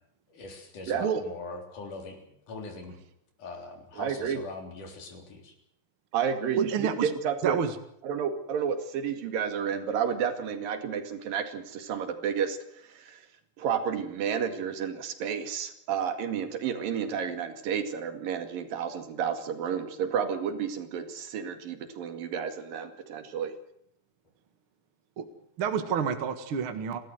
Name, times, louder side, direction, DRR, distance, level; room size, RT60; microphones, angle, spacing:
voice 1, 0.3-3.0 3.4-5.5, left 3 dB, 65° left, 4 dB, 5.0 m, -42 dB
voice 2, 4.0-4.4 6.1-7.6 8.0-12.6 12.9-13.2 13.6-23.5, right 7 dB, 80° right, 8 dB, 3.9 m, -31 dB
voice 3, 6.6-7.1 7.4-7.8 25.2-25.3 25.6-27.0, right 7 dB, 45° right, 8 dB, 2.1 m, -28 dB
29.5 x 13.5 x 7.9 m, 0.74 s
omnidirectional pair, 4.0 m